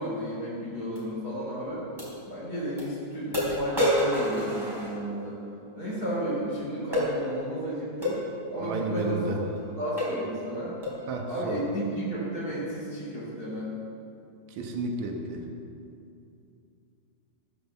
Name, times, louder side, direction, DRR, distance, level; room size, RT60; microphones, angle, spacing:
voice 1, 0.0-1.9 2.3-5.4 5.8-8.2 8.5-9.3 9.8-10.8 11.3-13.7, equal, 20° right, -7 dB, 3.6 m, -33 dB
sound 1, 0.9-1.0 2.0-2.1 2.8-2.9 3.3-5.3 6.9-7.1 8.0-8.2 9.0-9.2 9.5-9.7 10.0-10.3 10.8-11.1, equal, 5° right, 3.1 m, -28 dB
voice 2, 8.6-9.4 11.1-11.6 14.6-15.4, right 3 dB, 90° right, 2 dB, 1.6 m, -32 dB
14.5 x 9.3 x 7.1 m, 2.6 s
omnidirectional pair, 5.3 m